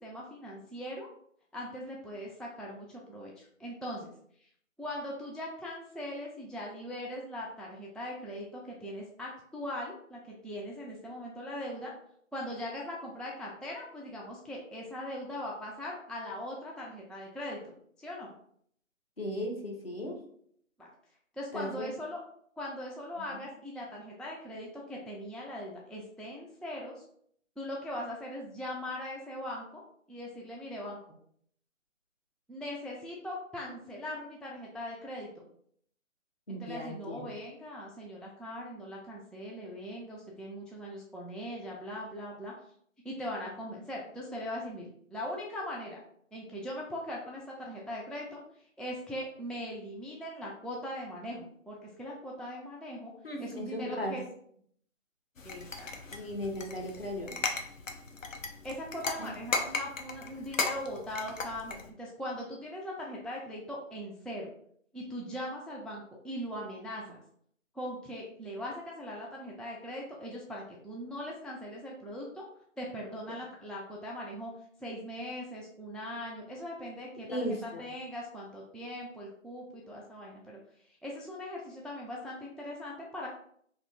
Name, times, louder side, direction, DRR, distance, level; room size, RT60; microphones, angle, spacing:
voice 1, 0.0-1.1 1.5-4.1 4.4-4.5 4.8-11.9 12.3-18.3 20.8-20.9 21.3-22.2 22.6-27.0 27.6-29.8 30.1-31.2 32.5-35.4 36.5-42.5 43.0-46.0 46.3-48.4 48.8-53.1 53.4-54.2 55.4-56.2 58.6-64.5 64.9-67.2 67.7-72.5 72.8-74.5 74.8-83.3, left 1 dB, ahead, -3 dB, 0.3 m, -40 dB
voice 2, 19.2-20.2 21.5-21.9 23.3-23.5 33.6-33.7 36.5-37.3 53.2-54.2 56.1-57.4 59.2-59.3 77.3-77.8, equal, 50° left, 0 dB, 0.8 m, -36 dB
sound 1, 55.4-61.9, left 3 dB, 80° left, 0.7 m, -37 dB
2.7 x 2.4 x 3.3 m, 0.64 s
figure-of-eight pair, 175°, 39 cm